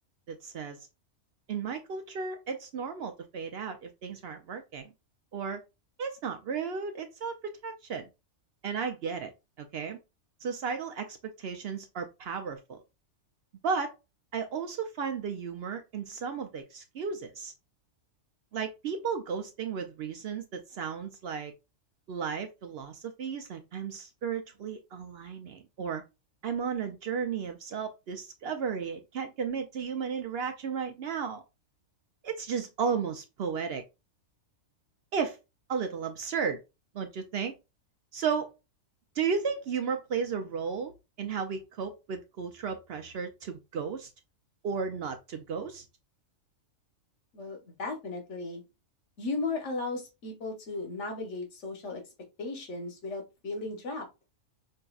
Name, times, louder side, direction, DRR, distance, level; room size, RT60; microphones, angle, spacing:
voice 1, 0.3-0.9 1.5-4.9 5.3-5.6 6.0-8.1 8.6-9.3 9.6-10.0 10.4-12.8 13.6-13.9 14.3-17.5 18.5-21.5 22.1-26.0 26.4-31.4 32.2-33.8 35.1-35.4 35.7-36.6 36.9-37.5 38.1-38.5 39.2-40.9 41.2-44.1 44.6-45.9, right 6 dB, 65° right, 0.8 m, -34 dB
voice 2, 47.3-48.6 49.2-52.0 52.4-54.1, left 3 dB, 85° left, 1.3 m, -36 dB
5.4 x 2.6 x 2.3 m
omnidirectional pair, 1.2 m